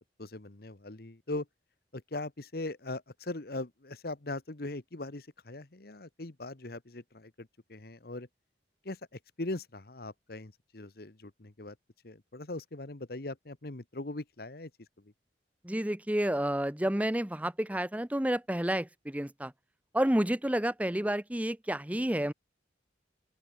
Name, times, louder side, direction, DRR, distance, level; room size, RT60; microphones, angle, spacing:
voice 1, 0.2-1.5 1.9-8.3 8.8-11.8 12.0-14.7 15.0-15.1, left 2 dB, 60° left, 1.3 m, -40 dB
voice 2, 15.6-19.5 19.9-22.3, right 1 dB, 10° right, 0.8 m, -30 dB
open air
head